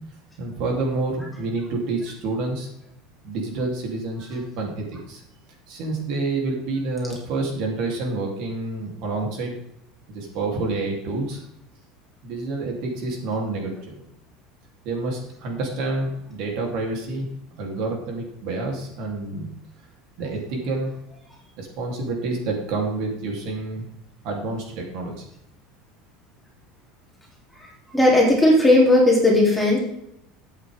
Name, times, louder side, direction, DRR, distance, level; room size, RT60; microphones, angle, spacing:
voice 1, 0.4-2.7 3.2-5.2 5.7-9.5 10.1-11.4 12.2-14.1 14.8-17.3 17.6-19.5 20.2-20.9 21.6-23.9 24.2-25.2, right 3 dB, 55° right, 0 dB, 3.2 m, -28 dB
voice 2, 27.9-29.8, left 1 dB, 5° left, -4 dB, 3.1 m, -16 dB
13.0 x 8.6 x 3.6 m, 0.78 s
cardioid pair, 160°, 0 cm